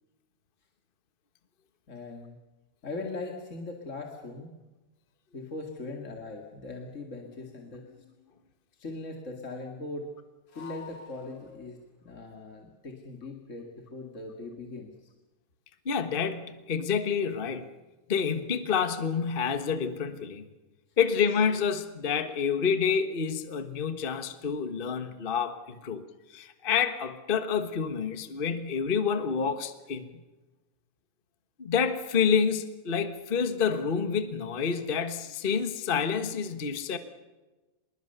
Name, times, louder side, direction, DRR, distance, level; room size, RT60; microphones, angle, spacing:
voice 1, 1.9-2.4 2.8-4.5 5.3-7.9 8.7-10.1 10.5-11.8 12.0-15.1, left 3 dB, 30° left, 2 dB, 2.1 m, -40 dB
sound 1, 7.2-8.3 10.5-11.9, left 6 dB, 90° left, 5.6 m, -50 dB
voice 2, 15.8-17.7 18.1-20.5 21.0-26.0 26.3-30.2 31.6-37.0, left 6 dB, 65° left, 10 dB, 0.5 m, -28 dB
26.0 x 21.0 x 6.8 m, 1.2 s
omnidirectional pair, 3.4 m